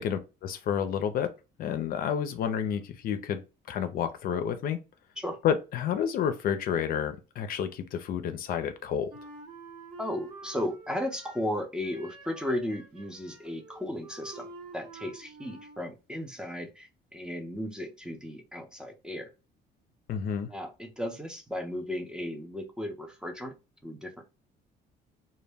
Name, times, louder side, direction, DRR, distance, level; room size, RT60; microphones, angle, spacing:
voice 1, 0.0-1.3 1.6-3.4 3.7-4.8 5.4-9.1 20.1-20.5, left 8 dB, 60° left, 0.4 m, -30 dB
Wind instrument woodwind instrument, 9.1-11.5 11.8-15.9, right 4 dB, 50° right, 1.1 m, -47 dB
voice 2, 10.0-14.5 14.7-19.3 20.5-23.5 23.8-24.1, left 1 dB, 5° right, 0.5 m, -35 dB
2.2 x 2.1 x 3.3 m
cardioid pair, 110°, 17 cm